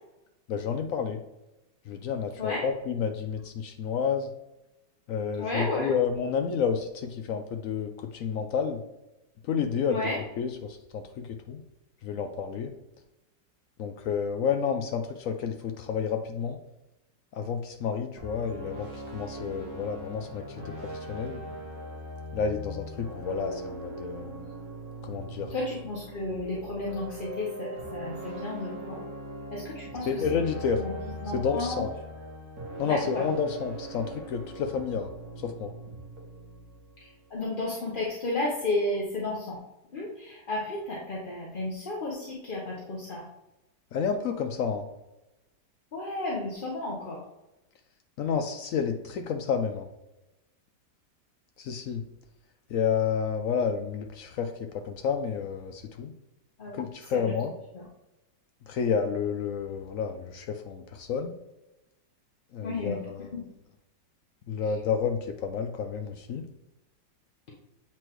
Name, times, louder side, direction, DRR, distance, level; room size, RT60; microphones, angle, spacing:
voice 1, 0.5-1.2 1.9-4.3 5.1-8.8 9.5-10.0 10.4-11.6 12.0-12.7 13.8-16.6 17.3-21.4 22.3-24.5 25.0-25.5 30.1-30.8 31.3-31.9 32.8-35.1 35.4-35.7 43.9-44.9 48.2-49.9 51.6-52.0 52.7-56.1 56.7-57.5 58.7-61.3 62.5-63.3 64.5-66.5, left 6 dB, 75° left, 5 dB, 0.7 m, -30 dB
voice 2, 5.4-5.9 9.9-10.2 25.4-29.0 29.5-31.9 32.8-33.2 37.0-39.6 39.9-43.2 45.9-47.2 56.6-56.8 57.1-57.4 57.7-57.8 62.6-63.0 63.3-63.4 64.7-64.8 67.5-67.6, left 2 dB, 40° left, -4 dB, 0.8 m, -33 dB
sound 1, 18.2-37.3, right 1 dB, 60° right, 1.8 m, -40 dB
7.9 x 4.4 x 3.0 m, 0.94 s
omnidirectional pair, 1.9 m